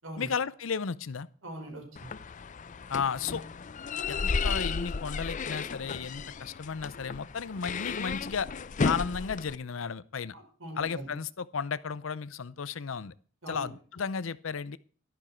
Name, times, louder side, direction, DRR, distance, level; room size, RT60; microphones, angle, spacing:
voice 1, 0.2-1.3 2.9-3.4 4.1-8.5 8.8-10.3 10.8-13.1 13.5-14.8, left 6 dB, 80° left, 0.6 m, -34 dB
voice 2, 1.4-2.1 10.3-11.1 13.4-13.7, right 1 dB, 80° right, 5.5 m, -42 dB
sound 1, 2.0-9.6, left 4 dB, 40° left, 0.5 m, -34 dB
12.5 x 11.0 x 4.5 m
head